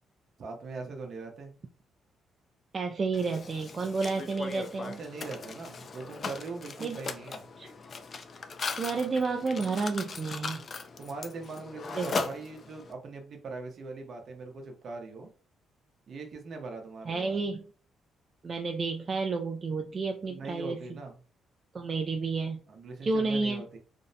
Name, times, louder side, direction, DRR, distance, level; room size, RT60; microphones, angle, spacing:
voice 1, 0.4-1.6 4.8-7.5 11.0-15.3 16.1-17.4 20.2-21.2 22.7-23.8, right 3 dB, 60° right, 3 dB, 0.7 m, -41 dB
voice 2, 2.7-5.0 6.8-7.0 7.6-7.7 8.8-10.7 12.0-12.1 17.1-17.7 18.4-20.8 21.7-22.6 23.0-23.6, right 4 dB, 40° right, 3 dB, 0.3 m, -31 dB
Mechanisms, 3.1-12.9, left 4 dB, 45° left, 0.3 m, -39 dB
2.5 x 2.1 x 2.6 m, 0.39 s
cardioid pair, 90°, 0 cm